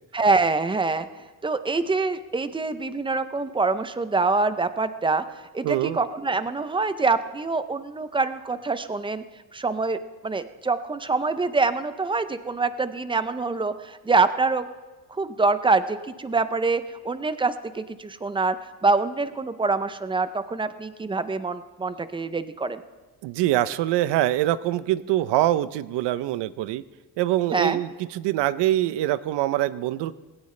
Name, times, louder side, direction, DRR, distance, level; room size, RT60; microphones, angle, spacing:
voice 1, 0.1-1.1 1.4-5.2 5.5-9.2 9.5-10.0 10.2-14.7 15.2-18.6 18.8-22.8 27.5-27.8, right 3 dB, 15° right, 11 dB, 0.5 m, -25 dB
voice 2, 5.6-6.0 23.2-26.8 27.2-30.1, right 14 dB, 80° right, 15 dB, 0.7 m, -24 dB
19.5 x 17.0 x 3.3 m, 1.2 s
cardioid pair, 155°, 41 cm